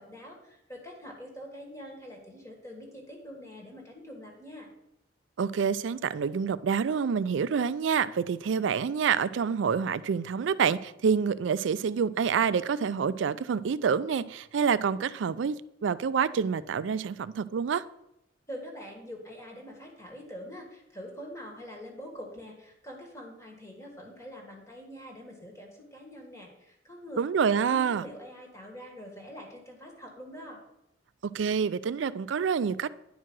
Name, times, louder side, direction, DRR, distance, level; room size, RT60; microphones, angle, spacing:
voice 1, 0.0-4.7 18.5-27.2 27.7-30.6, equal, 15° left, 1.6 m, -44 dB
voice 2, 5.4-15.6 15.8-17.8 27.2-28.1 31.3-32.9, right 6 dB, 75° right, 0.4 m, -27 dB
10.0 x 4.7 x 6.0 m
head